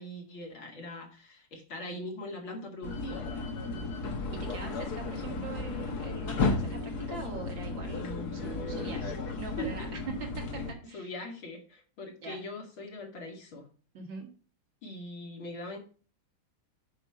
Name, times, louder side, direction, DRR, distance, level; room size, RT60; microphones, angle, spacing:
voice 1, 0.0-3.3 7.9-9.2 9.4-10.0 10.5-13.7 14.8-15.8, left 1 dB, 80° left, 1 dB, 3.1 m, -41 dB
sound 1, 2.8-10.7, left 3 dB, 55° left, 1.8 m, -34 dB
voice 2, 4.4-10.4 10.9-11.1 12.2-12.4 13.9-14.3, right 4 dB, 65° right, 2 dB, 2.9 m, -43 dB
8.9 x 5.5 x 5.5 m, 0.38 s
omnidirectional pair, 2.2 m